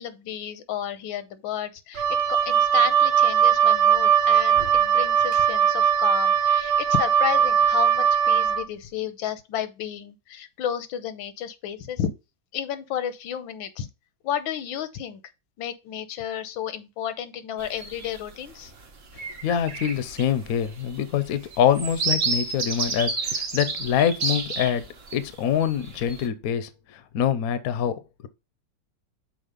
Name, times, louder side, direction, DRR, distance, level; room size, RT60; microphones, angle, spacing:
voice 1, 0.0-12.1 12.5-13.9 14.2-15.2 15.6-18.7, left 9 dB, 85° left, 1.6 m, -32 dB
Wind instrument woodwind instrument, 1.9-8.6, right 8 dB, 85° right, 1.6 m, -20 dB
sound 1, 17.6-18.2 18.7-18.8 19.1-25.2 25.6-26.3, right 4 dB, 45° right, 1.2 m, -30 dB
voice 2, 19.4-24.8 25.1-28.3, left 9 dB, 60° left, 1.0 m, -25 dB
6.4 x 4.6 x 5.1 m
omnidirectional pair, 2.1 m